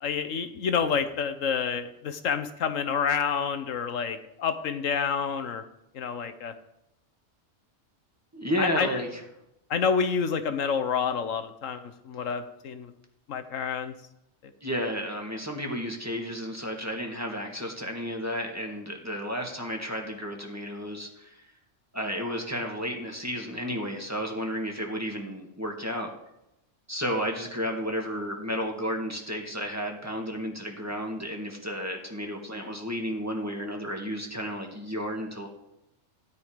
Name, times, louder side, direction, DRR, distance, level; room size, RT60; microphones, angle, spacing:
voice 1, 0.0-5.6 5.9-6.5 8.6-9.0 9.7-12.9 13.3-13.9, left 6 dB, 85° left, 9 dB, 1.3 m, -28 dB
voice 2, 8.3-9.2 14.6-21.5 21.9-26.1 26.9-35.5, equal, 10° right, 1 dB, 2.0 m, -32 dB
16.0 x 10.0 x 5.2 m, 0.87 s
omnidirectional pair, 1.3 m